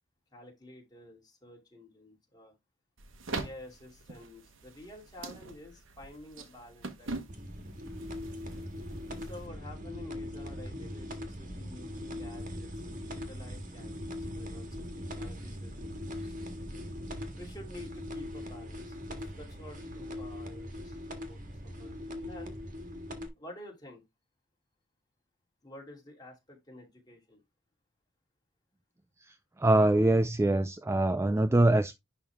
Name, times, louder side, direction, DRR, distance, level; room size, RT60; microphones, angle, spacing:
voice 1, 0.3-2.5 3.3-7.2 9.2-14.7 15.1-16.5 17.3-22.6 23.4-24.0 25.6-27.4, left 1 dB, 20° left, 2.9 m, -50 dB
sound 1, 3.0-9.5, right 3 dB, 75° right, 1.2 m, -43 dB
sound 2, 7.3-23.3, left 1 dB, 45° right, 1.7 m, -41 dB
voice 2, 29.6-32.0, right 1 dB, 15° right, 0.4 m, -24 dB
10.5 x 3.6 x 3.5 m
head